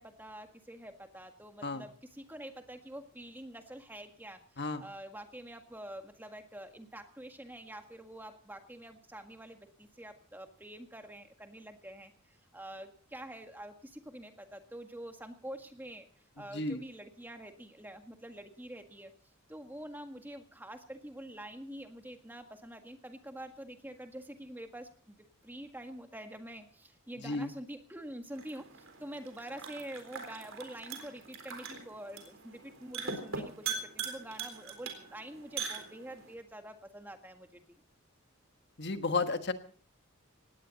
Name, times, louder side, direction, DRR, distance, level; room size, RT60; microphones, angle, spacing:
voice 1, 0.0-16.1 16.4-19.1 19.5-25.2 25.4-37.8, right 1 dB, 10° right, 6 dB, 1.7 m, -46 dB
sound 1, 28.3-36.3, right 5 dB, 70° right, 3.9 m, -42 dB
voice 2, 38.8-39.5, left 3 dB, 55° left, 9 dB, 1.4 m, -32 dB
19.0 x 17.0 x 4.1 m, 0.44 s
head